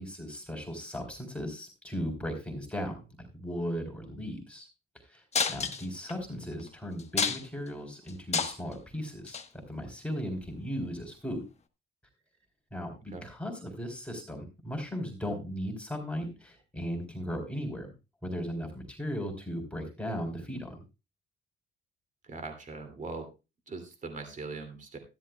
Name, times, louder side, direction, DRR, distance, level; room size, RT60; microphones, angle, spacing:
voice 1, 0.0-4.7 5.1-5.2 5.5-9.4 9.7-11.4 12.7-17.9 18.2-20.8, equal, 5° left, 2 dB, 3.7 m, -37 dB
sound 1, 5.3-6.1 6.6-6.7 7.0-7.7 8.1-8.7 9.3-9.5 10.4-10.5, left 6 dB, 35° left, 1.1 m, -30 dB
voice 2, 6.3-6.7 13.1-13.3 22.2-23.3 23.7-25.0, right 3 dB, 40° right, 6 dB, 2.7 m, -41 dB
13.5 x 11.5 x 2.3 m, 0.27 s
cardioid pair, 90°, 20 cm